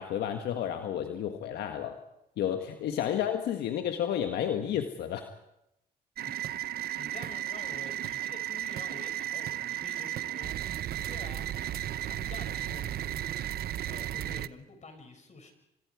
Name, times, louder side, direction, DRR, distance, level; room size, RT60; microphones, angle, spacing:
voice 1, 0.0-2.0 2.4-5.3, left 9 dB, 80° left, 6 dB, 1.6 m, -31 dB
sound 1, 6.2-14.5, right 12 dB, 70° right, 0.8 m, -34 dB
voice 2, 7.0-13.3 13.8-15.5, left 3 dB, 45° left, 5 dB, 6.8 m, -49 dB
30.0 x 25.5 x 4.9 m, 0.85 s
supercardioid pair, 70°, 17 cm